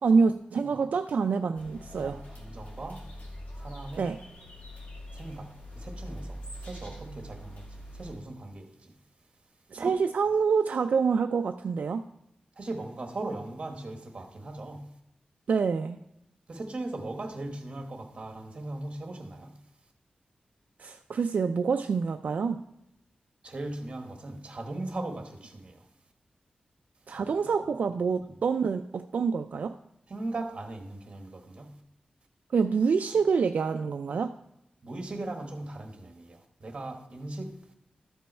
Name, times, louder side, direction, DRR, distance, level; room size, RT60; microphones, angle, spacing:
voice 1, 0.0-2.2 4.0-4.2 9.7-12.1 15.5-16.0 20.8-22.6 27.1-29.7 32.5-34.3, right 5 dB, 70° right, 0.3 m, -26 dB
sound 1, 1.6-8.2, equal, 60° left, 2.2 m, -43 dB
voice 2, 1.9-3.0 3.6-4.1 5.1-8.9 9.7-9.9 12.6-15.0 16.5-19.6 23.4-25.9 27.1-27.4 28.2-28.3 30.1-31.8 34.8-37.6, right 2 dB, 40° right, 1.3 m, -39 dB
13.0 x 5.4 x 4.4 m
wide cardioid pair, 145°, 3 cm